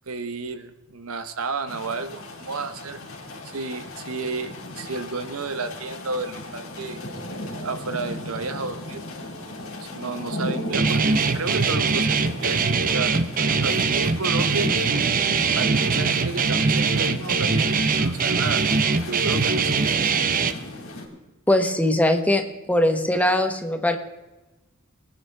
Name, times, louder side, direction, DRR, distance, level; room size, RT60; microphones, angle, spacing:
voice 1, 0.1-3.0 3.4-7.0 7.5-9.0 9.8-12.6 12.9-14.7 15.5-18.6 19.1-19.8, right 3 dB, 85° right, 10 dB, 1.0 m, -32 dB
sound 1, 1.7-21.1, left 1 dB, 85° left, 3.1 m, -36 dB
Guitar, 10.7-20.5, right 4 dB, 40° right, 0.7 m, -22 dB
voice 2, 21.5-24.0, left 1 dB, 5° left, 5 dB, 1.1 m, -21 dB
21.5 x 9.9 x 3.5 m, 1.1 s
head